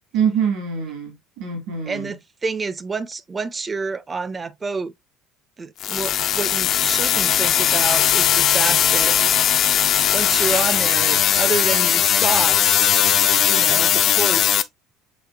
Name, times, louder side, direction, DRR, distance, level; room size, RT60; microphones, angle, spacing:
voice 1, 0.1-2.1, right 7 dB, 80° right, 1.3 m, -24 dB
voice 2, 1.9-4.9 5.6-9.5 10.1-12.9 13.5-14.6, right 4 dB, 25° right, 0.4 m, -28 dB
sound 1, 5.8-14.6, left 10 dB, 50° left, 0.3 m, -18 dB
5.1 x 3.9 x 2.2 m
hypercardioid pair, 75°, 0 cm